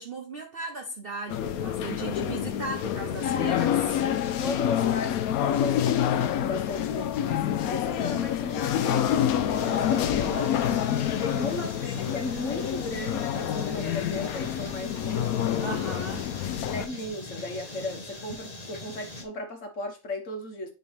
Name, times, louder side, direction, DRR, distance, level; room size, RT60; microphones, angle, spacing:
voice 1, 0.0-4.0 9.8-10.2 11.9-12.1 15.6-16.2, right 3 dB, 80° right, 0.5 m, -37 dB
sound 1, 1.3-16.9, left 10 dB, 70° left, 0.8 m, -27 dB
voice 2, 4.4-10.4 11.2-15.3 16.7-20.7, left 2 dB, 45° left, 1.5 m, -36 dB
sound 2, 9.5-19.2, left 1 dB, 25° left, 1.1 m, -41 dB
10.0 x 3.7 x 3.3 m
omnidirectional pair, 2.1 m